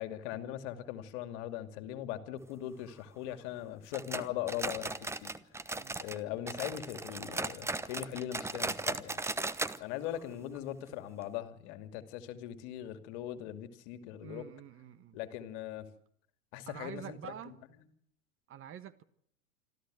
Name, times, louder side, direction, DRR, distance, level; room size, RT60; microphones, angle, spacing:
voice 1, 0.0-5.3 6.0-9.2 9.8-14.4 15.1-15.9 16.5-17.5, left 12 dB, 50° left, 2.6 m, -40 dB
sound 1, 3.9-6.2 6.5-9.8 10.1-10.2 10.5-10.6 11.2-11.3, right 3 dB, 5° right, 0.9 m, -37 dB
voice 2, 14.2-15.2 16.7-17.5 18.5-19.0, right 10 dB, 30° right, 1.4 m, -47 dB
26.5 x 14.0 x 7.8 m
hypercardioid pair, 95°, 42 cm